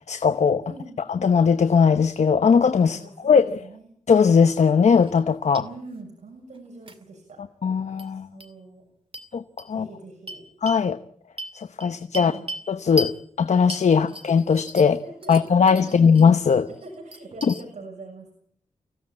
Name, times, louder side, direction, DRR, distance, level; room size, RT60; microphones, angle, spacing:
voice 1, 0.1-0.6 1.1-3.6 4.1-5.7 7.6-8.3 9.3-9.9 10.6-11.0 11.5-12.3 12.7-13.1 13.4-15.0 15.3-16.7 17.4-17.5, left 6 dB, 65° left, 1.0 m, -19 dB
voice 2, 0.6-1.0 2.8-3.9 5.6-7.5 8.1-8.9 9.7-10.4 12.1-12.5 15.0-16.0 16.8-18.3, right 2 dB, 75° right, 7.0 m, -43 dB
sound 1, 5.0-5.2 5.5-5.6 6.9-7.0 8.0-8.1 8.4-8.5 9.1-9.3 9.6-9.7 10.3-10.8 11.4-12.7 13.0-13.2 13.7-15.0 15.2-16.3 16.7-17.6, equal, 45° right, 2.3 m, -36 dB
25.0 x 16.0 x 8.7 m
wide cardioid pair, 110°, 13 cm